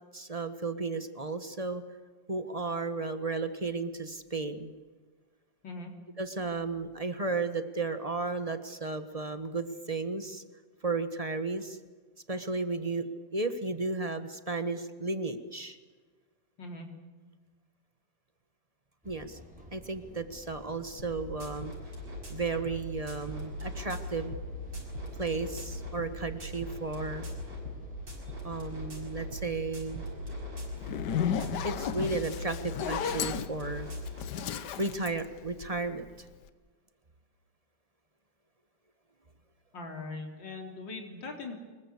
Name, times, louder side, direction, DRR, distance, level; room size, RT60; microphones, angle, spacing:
voice 1, 0.1-1.8 2.3-4.7 6.2-10.4 10.8-11.8 12.3-13.0 13.3-15.8 19.0-19.4 19.7-21.7 22.3-24.4 25.2-27.2 28.4-30.1 31.6-33.9 34.8-36.3, right 3 dB, 20° right, 9 dB, 1.3 m, -34 dB
sound 1, 19.0-31.3, equal, 5° right, 3.9 m, -52 dB
sound 2, 21.0-34.3, left 1 dB, 90° right, 6.6 m, -40 dB
Zipper (clothing), 30.8-36.0, left 8 dB, 70° left, 1.5 m, -34 dB
voice 2, 39.7-41.5, left 3 dB, 85° left, 2 dB, 4.2 m, -40 dB
25.0 x 22.0 x 8.3 m, 1.4 s
omnidirectional pair, 2.0 m